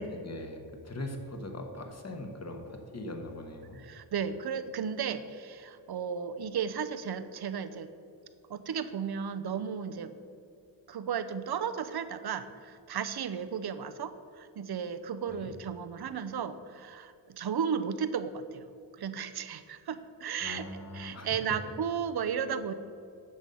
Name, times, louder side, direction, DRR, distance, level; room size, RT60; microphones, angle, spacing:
voice 1, 0.0-3.8 15.3-15.5 20.4-21.4, left 1 dB, 35° left, 4 dB, 1.4 m, -41 dB
voice 2, 3.7-7.9 8.5-10.2 10.9-18.7 19.0-20.7 20.9-22.7, right 7 dB, 55° right, 11 dB, 0.7 m, -34 dB
9.4 x 6.3 x 5.5 m, 2.5 s
cardioid pair, 80°, 46 cm